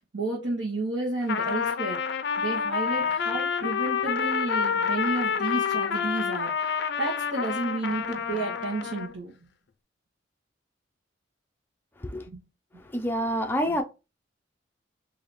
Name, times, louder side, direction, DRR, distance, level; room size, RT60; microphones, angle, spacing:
voice 1, 0.0-2.0 2.4-9.3 12.3-12.4, right 2 dB, 85° right, 1.2 m, -31 dB
Trumpet, 1.2-9.1, left 6 dB, 60° left, 0.4 m, -28 dB
voice 2, 12.8-13.8, equal, 10° left, 0.5 m, -28 dB
3.3 x 2.8 x 4.1 m
head